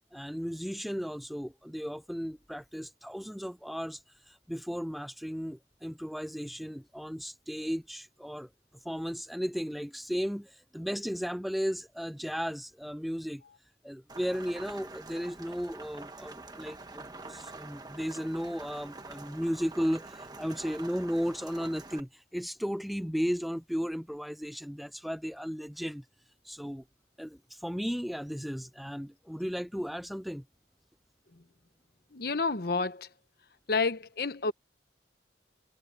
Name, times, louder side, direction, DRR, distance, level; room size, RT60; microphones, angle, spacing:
voice 1, 0.1-8.5 8.8-13.4 13.8-26.0 26.4-26.8 27.2-30.4, equal, ahead, 0.4 m, -35 dB
Rain, 14.1-22.0, right 3 dB, 20° right, 1.3 m, -46 dB
voice 2, 32.1-33.1 33.7-34.5, left 4 dB, 55° left, 1.0 m, -29 dB
head